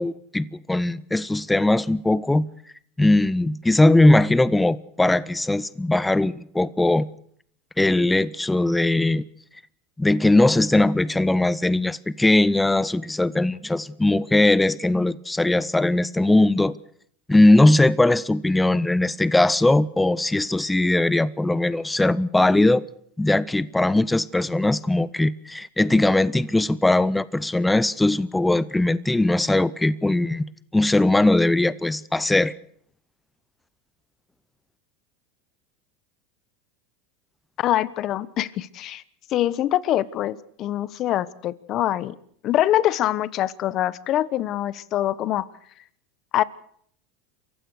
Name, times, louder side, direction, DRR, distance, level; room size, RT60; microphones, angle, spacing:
voice 1, 0.0-2.5 3.0-7.1 7.8-9.2 10.0-16.8 17.3-22.8 23.2-32.6, left 2 dB, 5° left, 0.8 m, -20 dB
voice 2, 37.6-39.0 39.3-42.1 42.4-45.5 46.3-46.4, left 13 dB, 45° left, 1.2 m, -24 dB
28.0 x 15.5 x 6.5 m
supercardioid pair, 115°, 0 cm